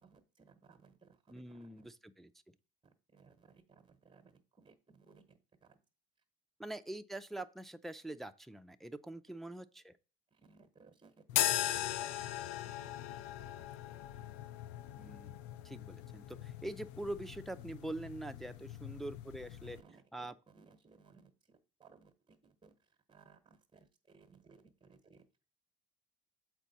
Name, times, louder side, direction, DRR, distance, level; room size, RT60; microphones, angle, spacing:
voice 1, 0.0-1.8 2.8-5.8 10.3-12.3 12.6-13.7 14.1-14.3 19.7-25.2, right 4 dB, 15° right, 1.1 m, -63 dB
voice 2, 1.3-2.3 6.6-10.0 15.0-19.8 20.1-20.3, right 1 dB, ahead, 0.4 m, -44 dB
sound 1, 11.3-19.8, left 12 dB, 75° left, 0.5 m, -39 dB
7.2 x 4.5 x 4.1 m
hypercardioid pair, 65°, 29 cm